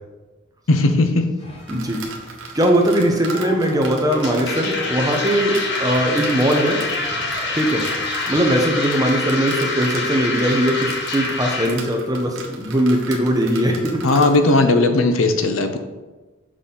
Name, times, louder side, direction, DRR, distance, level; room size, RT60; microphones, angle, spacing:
voice 1, 0.7-1.3 14.0-15.8, left 2 dB, 85° left, 7 dB, 0.7 m, -17 dB
sound 1, 1.4-8.5, equal, 30° left, 1.1 m, -39 dB
sound 2, 1.6-14.6, right 3 dB, 75° right, 1.0 m, -37 dB
voice 2, 1.7-2.0 2.5-6.8 7.5-7.9 8.3-14.0, right 1 dB, 20° right, 2 dB, 0.9 m, -20 dB
sound 3, 4.1-11.7, left 3 dB, 60° left, 0.9 m, -26 dB
6.3 x 5.6 x 3.8 m, 1.2 s
head